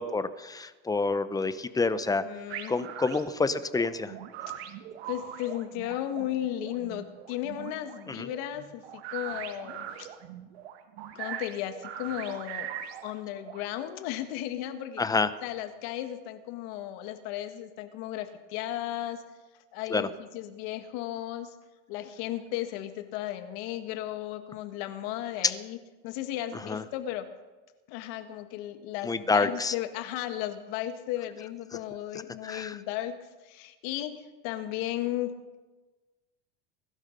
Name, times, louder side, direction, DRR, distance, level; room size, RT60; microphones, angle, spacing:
voice 1, 0.0-2.2 2.7-4.1 8.2-8.3 15.0-15.3 19.9-20.1 26.7-26.8 29.0-29.7 32.4-32.8, left 3 dB, 10° left, 13 dB, 0.8 m, -28 dB
voice 2, 2.2-2.7 5.1-10.1 11.1-12.7 13.0-15.0 15.4-19.2 19.7-21.5 21.9-25.8 26.0-27.3 27.9-35.3, left 13 dB, 70° left, 9 dB, 1.8 m, -35 dB
sound 1, 2.5-13.6, right 10 dB, 90° right, 1.5 m, -41 dB
22.0 x 12.5 x 5.3 m, 1.2 s
supercardioid pair, 125°, 31 cm